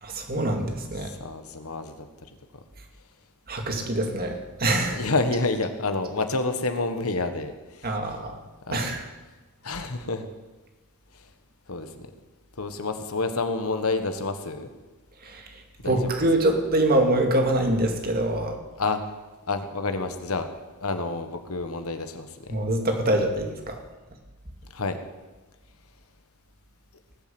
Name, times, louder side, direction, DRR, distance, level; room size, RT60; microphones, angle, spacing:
voice 1, 0.0-1.1 3.5-5.0 7.8-8.4 8.7-9.0 15.2-18.6 22.5-23.8, right 1 dB, 45° right, 3 dB, 2.2 m, -25 dB
voice 2, 1.0-1.9 4.9-8.0 8.7-9.0 9.6-10.2 11.7-12.1 12.6-14.7 15.8-16.1 18.8-19.0 19.5-20.5 20.8-22.6 24.7-25.0, left 3 dB, 75° left, 8 dB, 1.4 m, -29 dB
18.5 x 7.8 x 7.8 m, 1.2 s
head